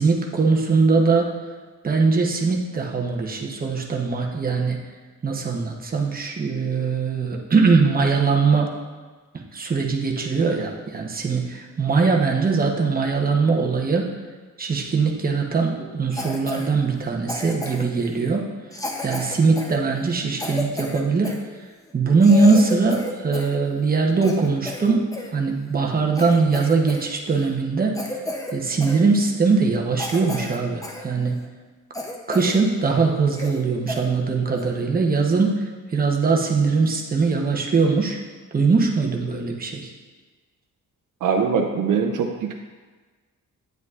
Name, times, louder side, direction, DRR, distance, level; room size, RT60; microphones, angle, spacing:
voice 1, 0.0-1.3 1.8-4.8 5.2-8.8 9.5-14.1 14.6-18.4 19.0-21.4 21.9-28.0 28.5-31.4 32.3-35.6 35.9-38.2 38.5-39.9, right 4 dB, 30° right, 1 dB, 0.9 m, -21 dB
Cough, 16.1-16.7 17.3-18.0 18.7-21.4 21.9-22.0 22.2-23.6 23.9-25.3 25.8-25.9 26.2-27.1 27.3-27.6 27.9-28.6 28.8-29.0 29.5-29.6 30.0-31.0 31.4-31.5 31.9-32.6 32.9-33.0 33.3-33.6 33.9-34.0 34.6-34.8, left 2 dB, 10° left, 0.6 m, -32 dB
voice 2, 41.2-42.5, right 6 dB, 75° right, 1 dB, 0.6 m, -22 dB
9.2 x 8.2 x 2.4 m, 1.4 s
wide cardioid pair, 155°, 32 cm